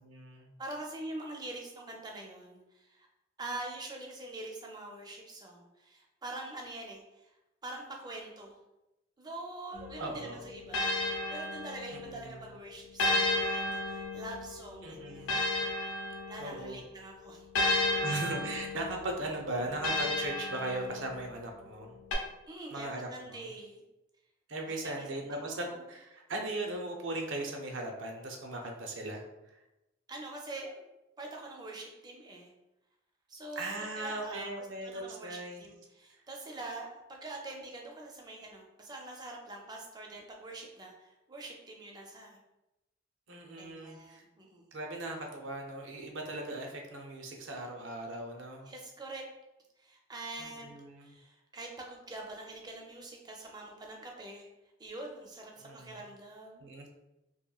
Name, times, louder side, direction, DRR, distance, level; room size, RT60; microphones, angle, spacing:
voice 1, 0.0-0.5 10.0-10.4 11.9-12.3 14.8-15.4 16.4-16.8 18.0-22.0 22.7-23.4 24.5-29.2 33.6-35.6 43.3-44.2 44.7-48.7 50.4-51.1 55.6-56.1 56.6-56.9, right 2 dB, 80° right, 2 dB, 0.5 m, -38 dB
voice 2, 0.6-3.1 3.4-7.3 7.6-8.6 9.2-15.6 16.3-18.3 22.5-23.8 24.8-25.8 30.1-30.8 31.2-32.5 33.3-42.4 43.6-44.7 48.7-49.2 49.8-54.5 54.8-56.7, right 2 dB, 20° right, 1 dB, 0.4 m, -45 dB
sound 1, 9.7-12.2 13.0-16.8 17.5-21.3 22.1-22.2, left 2 dB, 85° left, 0.6 m, -33 dB
2.9 x 2.5 x 2.3 m, 0.95 s
head